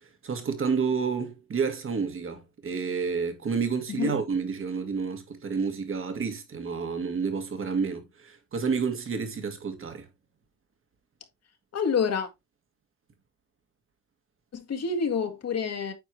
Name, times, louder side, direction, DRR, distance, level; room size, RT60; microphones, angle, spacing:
voice 1, 0.0-10.1, right 5 dB, 45° right, 2.1 m, -30 dB
voice 2, 11.7-12.3 14.5-15.9, left 6 dB, 55° left, 2.0 m, -28 dB
8.8 x 4.6 x 3.3 m
cardioid pair, 90°, 30 cm